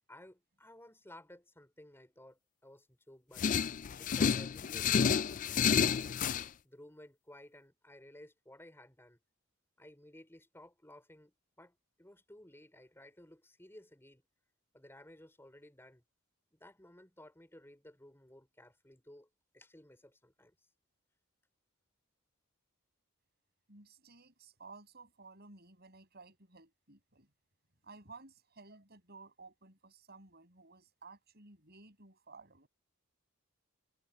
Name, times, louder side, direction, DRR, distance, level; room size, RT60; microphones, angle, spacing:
voice 1, 0.1-3.5 4.0-6.2 6.6-9.2 9.8-14.3 14.7-16.0 16.5-19.3 19.5-20.6, left 1 dB, 10° left, 4.0 m, -56 dB
sound 1, 3.4-6.5, left 7 dB, 35° left, 0.3 m, -30 dB
voice 2, 23.7-27.3 27.8-32.7, right 3 dB, 45° right, 7.9 m, -55 dB
head